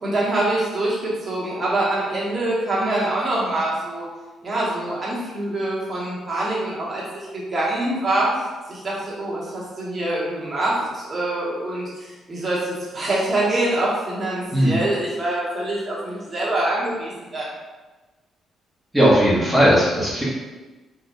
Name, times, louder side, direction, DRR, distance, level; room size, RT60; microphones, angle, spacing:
voice 1, 0.0-4.1 4.4-8.3 8.7-17.5, right 1 dB, 40° right, -6 dB, 1.3 m, -25 dB
voice 2, 18.9-20.2, equal, 10° right, -7 dB, 1.1 m, -17 dB
3.9 x 2.6 x 2.6 m, 1.2 s
cardioid pair, 90°, 0 cm